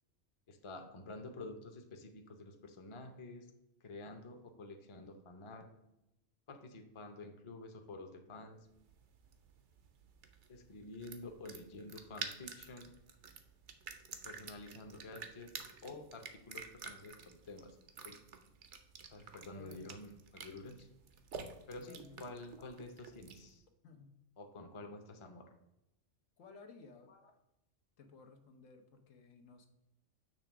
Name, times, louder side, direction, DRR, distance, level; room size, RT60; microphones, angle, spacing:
voice 1, 0.5-3.5 3.8-5.7 6.5-8.6 10.5-12.9 14.2-17.8 18.0-18.2 19.1-20.9 21.7-23.6 24.4-25.5 27.1-27.2, left 2 dB, 30° left, 5 dB, 0.7 m, -49 dB
sound 1, 8.7-23.6, right 5 dB, 65° right, 1.0 m, -50 dB
voice 2, 19.5-19.9 21.8-22.2 23.8-24.2 26.4-27.1 28.0-29.7, left 4 dB, 80° left, 4 dB, 1.3 m, -56 dB
6.9 x 3.3 x 6.0 m, 0.90 s
omnidirectional pair, 1.3 m